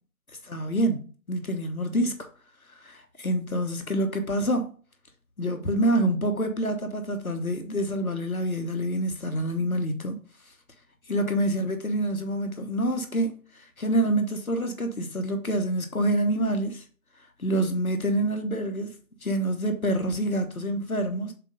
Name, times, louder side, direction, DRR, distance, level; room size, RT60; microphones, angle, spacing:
voice 1, 0.4-2.3 2.7-4.7 5.4-10.2 11.1-16.8 17.4-18.9 19.2-21.3, right 1 dB, 80° left, 1.2 m, -27 dB
7.3 x 2.6 x 5.1 m
figure-of-eight pair, 170°, 43 cm